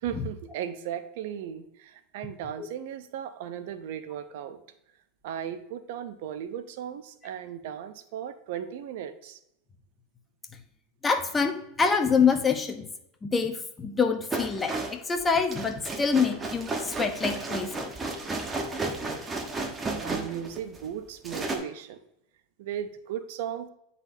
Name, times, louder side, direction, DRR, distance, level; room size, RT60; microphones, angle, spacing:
voice 1, 0.0-4.6 5.2-9.4 19.9-22.0 22.6-23.7, right 9 dB, 70° right, 11 dB, 0.6 m, -36 dB
voice 2, 11.0-12.9 13.2-17.9, left 5 dB, 20° left, 6 dB, 1.0 m, -26 dB
sound 1, 14.3-20.9 21.2-21.6, right 3 dB, 20° right, 1.1 m, -33 dB
9.6 x 4.2 x 2.7 m, 0.79 s
hypercardioid pair, 95°, 0 cm